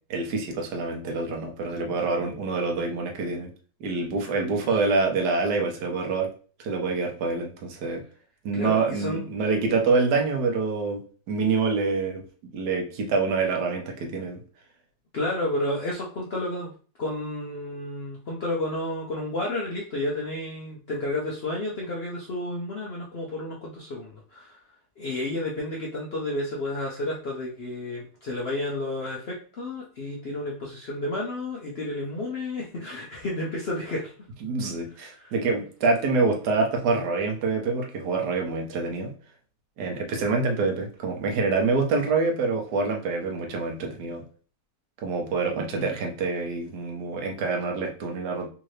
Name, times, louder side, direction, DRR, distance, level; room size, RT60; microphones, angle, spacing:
voice 1, 0.1-3.5 3.8-6.3 6.6-8.0 8.4-11.0 11.3-12.2 12.5-14.4 34.4-39.1 39.8-44.2 45.0-48.5, right 4 dB, 80° right, 2 dB, 1.3 m, -26 dB
voice 2, 8.5-9.3 15.1-16.7 17.0-24.6 25.0-34.1 35.2-35.3 45.7-45.9, left 1 dB, 60° left, -3 dB, 0.6 m, -31 dB
3.6 x 2.6 x 3.2 m, 0.41 s
omnidirectional pair, 1.8 m